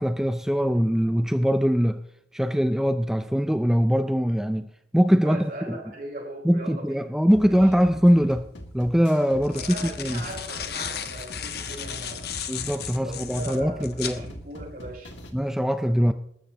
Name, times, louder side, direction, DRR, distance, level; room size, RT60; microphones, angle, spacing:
voice 1, 0.0-2.0 2.3-4.7 4.9-5.8 6.4-8.5 8.7-10.2 12.5-14.2 15.3-16.1, equal, 5° right, 9 dB, 0.4 m, -22 dB
voice 2, 5.2-7.7 9.4-12.3 12.9-15.1, right 1 dB, 50° right, 0 dB, 4.6 m, -39 dB
sound 1, 7.3-15.3, equal, 80° left, 2.3 m, -42 dB
sound 2, 8.1-8.2 9.2-14.2, left 9 dB, 60° left, 1.2 m, -35 dB
19.5 x 14.0 x 3.0 m, 0.78 s
head